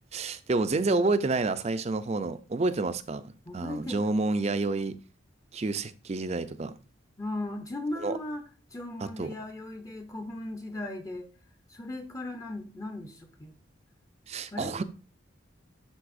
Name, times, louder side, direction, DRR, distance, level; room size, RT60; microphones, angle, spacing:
voice 1, 0.1-3.2 3.5-5.0 5.5-6.7 8.0-8.1 9.0-9.3 14.3-14.8, right 3 dB, 35° right, 0.4 m, -29 dB
voice 2, 0.7-1.1 3.5-4.0 7.2-8.4 8.7-11.3 11.7-13.5 14.5-14.8, left 2 dB, 15° left, 0.6 m, -37 dB
11.5 x 4.0 x 2.5 m
head